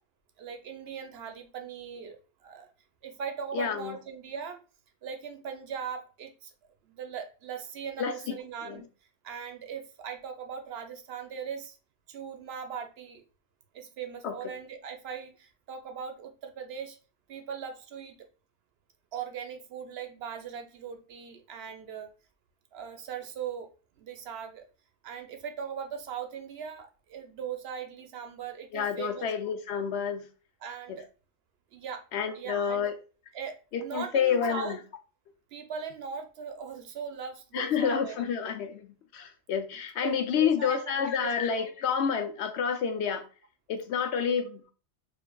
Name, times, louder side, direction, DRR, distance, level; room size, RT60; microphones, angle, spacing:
voice 1, 0.4-2.7 3.0-4.6 5.0-6.5 6.8-8.8 9.2-11.8 12.1-13.2 13.7-17.0 17.3-18.3 19.1-22.1 22.7-23.7 24.0-24.6 25.0-29.3 30.6-31.1 31.7-32.0 32.3-32.9 33.3-34.8 35.5-38.2 40.0-40.8 41.2-41.4, right 7 dB, 65° right, 0.8 m, -39 dB
voice 2, 3.5-4.0 8.0-8.4 8.6-8.8 14.2-14.4 28.7-30.3 30.9-31.0 32.1-32.9 33.7-34.8 37.5-43.3 43.7-44.6, left 7 dB, 75° left, 0.8 m, -29 dB
4.5 x 2.5 x 2.2 m
omnidirectional pair, 1.2 m